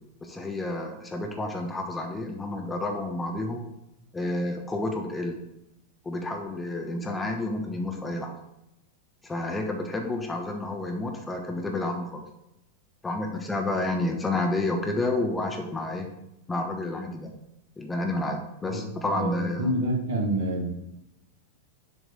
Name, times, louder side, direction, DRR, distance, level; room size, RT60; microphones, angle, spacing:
voice 1, 0.2-3.7 4.1-5.4 6.0-8.3 9.2-12.2 13.0-16.1 16.5-17.3 17.8-19.7, left 2 dB, 10° left, 3 dB, 0.9 m, -30 dB
voice 2, 18.7-20.7, right 1 dB, 55° right, 0 dB, 1.9 m, -28 dB
7.2 x 5.2 x 4.0 m, 0.87 s
figure-of-eight pair, 90°, 0 cm